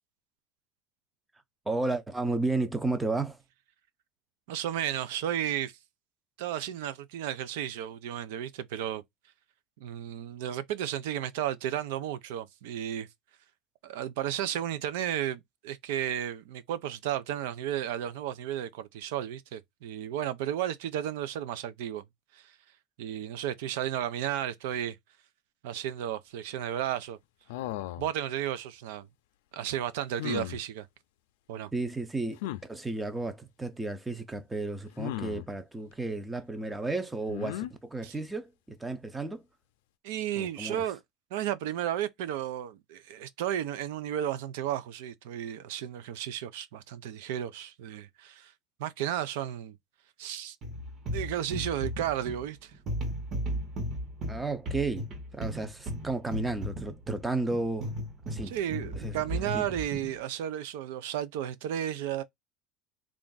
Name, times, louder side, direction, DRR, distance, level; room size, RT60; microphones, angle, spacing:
voice 1, 1.7-3.4 31.7-39.4 40.4-40.8 54.3-55.1 55.3-57.9 58.2-58.5 59.0-59.6, right 3 dB, 10° right, 0.5 m, -33 dB
voice 2, 4.5-5.7 6.4-9.0 9.8-13.1 13.8-22.0 22.3-22.5 23.0-25.0 25.6-27.2 28.0-29.1 29.5-30.9 31.5-31.7 38.0-38.1 40.0-41.0 41.3-48.5 48.8-49.8 50.2-50.6 51.1-52.7 58.4-62.2, right 11 dB, 85° right, 0.5 m, -33 dB
sound 1, 27.5-28.1 30.2-30.6 32.4-32.6 35.0-35.5 37.3-37.7, left 15 dB, 90° left, 0.4 m, -35 dB
sound 2, 50.6-60.2, equal, 35° right, 1.1 m, -36 dB
3.5 x 2.5 x 3.8 m
cardioid pair, 165°, 0 cm